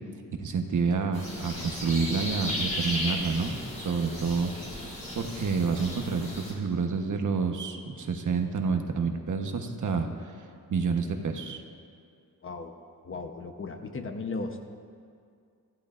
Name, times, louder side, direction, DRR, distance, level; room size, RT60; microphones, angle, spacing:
voice 1, 0.4-3.6 3.8-4.5 5.1-10.4 10.7-11.6, right 5 dB, 60° right, 4 dB, 1.1 m, -28 dB
sound 1, 1.1-6.5, left 1 dB, 20° left, 3.2 m, -35 dB
voice 2, 12.4-12.7 13.0-14.6, left 3 dB, 40° left, 5 dB, 0.9 m, -36 dB
24.5 x 15.0 x 2.5 m, 2.3 s
wide cardioid pair, 175°, 34 cm